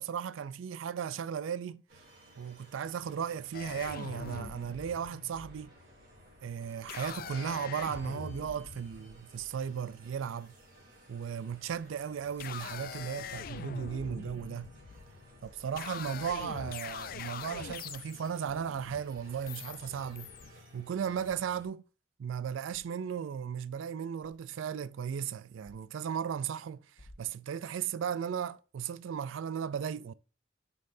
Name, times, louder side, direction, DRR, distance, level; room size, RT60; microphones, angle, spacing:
voice 1, 0.0-1.8 2.4-5.7 6.4-10.5 11.1-14.7 15.4-20.3 20.7-21.8 22.2-26.8 27.2-30.1, right 7 dB, 85° right, 0.4 m, -36 dB
sound 1, 1.9-21.7, right 1 dB, 50° right, 2.8 m, -58 dB
sound 2, 3.5-10.3 11.3-11.8 12.2-20.5, left 7 dB, 50° left, 0.4 m, -44 dB
sound 3, 14.0-14.2 15.4-15.8 16.3-16.4 16.9-17.3 17.7-18.1 18.4-18.8 19.4-19.5 19.8-20.1 20.8-20.9 21.3-21.5 22.7-23.0 24.2-24.6 25.6-25.8 26.3-26.5 26.9-27.9, left 1 dB, 70° left, 1.2 m, -59 dB
7.5 x 5.4 x 2.6 m
head